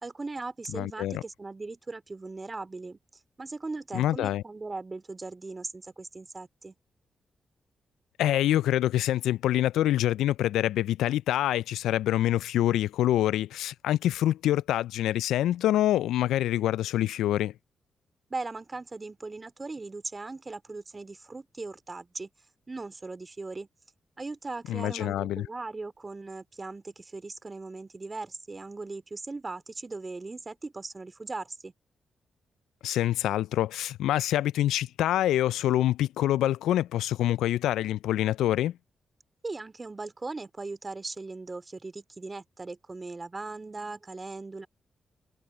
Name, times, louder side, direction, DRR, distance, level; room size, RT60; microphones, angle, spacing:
voice 1, 0.0-3.0 3.4-6.7 18.3-22.3 22.7-23.7 24.2-31.7 39.4-44.7, right 3 dB, 35° right, 3.0 m, -39 dB
voice 2, 0.7-1.2 3.9-4.4 8.2-17.5 24.7-25.5 32.8-38.7, left 13 dB, 80° left, 0.3 m, -26 dB
hypercardioid pair, 40°, 0 cm